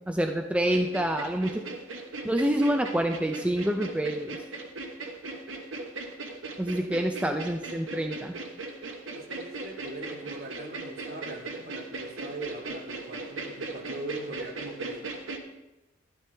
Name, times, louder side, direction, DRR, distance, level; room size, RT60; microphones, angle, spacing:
voice 1, 0.1-1.6 2.2-4.4 6.6-8.4, right 1 dB, 5° right, 4 dB, 0.5 m, -27 dB
sound 1, 0.7-15.4, right 3 dB, 85° right, 1.2 m, -38 dB
voice 2, 9.1-15.1, right 2 dB, 55° right, 1 dB, 1.7 m, -40 dB
12.5 x 11.5 x 3.4 m, 1.0 s
head